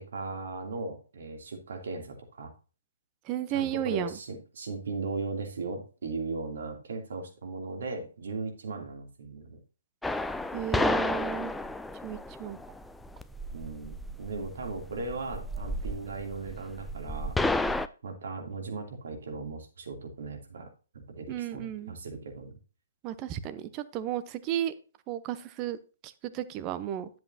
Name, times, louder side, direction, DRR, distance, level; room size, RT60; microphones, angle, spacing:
voice 1, 0.0-2.5 3.5-9.6 13.5-17.4 18.0-20.7 20.9-22.5, right 3 dB, 70° right, 3 dB, 2.8 m, -37 dB
voice 2, 3.3-4.2 10.5-11.5 12.0-12.6 21.3-21.9 23.0-24.7 25.1-25.8 26.0-27.1, right 11 dB, 30° right, 13 dB, 0.8 m, -33 dB
sound 1, 10.0-17.9, left 2 dB, 5° left, 0.4 m, -32 dB
10.5 x 7.7 x 2.8 m, 0.34 s
figure-of-eight pair, 130°, 0 cm